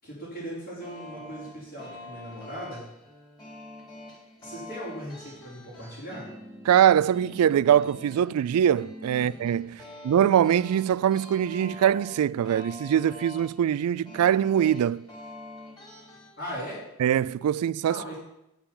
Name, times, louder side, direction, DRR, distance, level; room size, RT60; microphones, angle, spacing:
voice 1, 0.0-2.8 4.4-6.3 9.1-9.3 9.8-9.9 16.4-16.8 17.9-18.2, equal, 45° left, 4.2 m, -38 dB
sound 1, 0.8-16.3, left 1 dB, 20° left, 3.8 m, -46 dB
voice 2, 6.7-15.1 17.0-18.1, right 9 dB, 90° right, 0.3 m, -23 dB
9.1 x 6.8 x 7.1 m
head